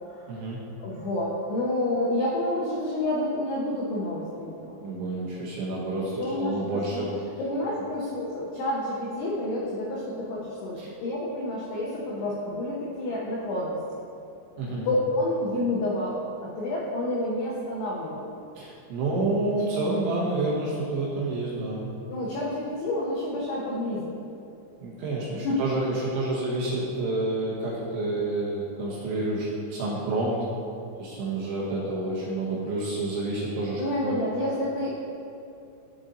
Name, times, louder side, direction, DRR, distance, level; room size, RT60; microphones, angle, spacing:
voice 1, 0.3-0.6 4.8-7.1 10.8-10.9 14.6-14.9 18.6-21.9 24.8-30.4 31.0-34.1, right 2 dB, 80° right, -6 dB, 2.6 m, -29 dB
voice 2, 0.8-4.9 6.2-7.1 7.4-13.8 14.8-18.3 22.1-24.1 25.3-25.6 33.8-34.9, left 1 dB, 85° left, -5 dB, 2.3 m, -29 dB
11.0 x 3.8 x 2.6 m, 2.7 s
omnidirectional pair, 5.6 m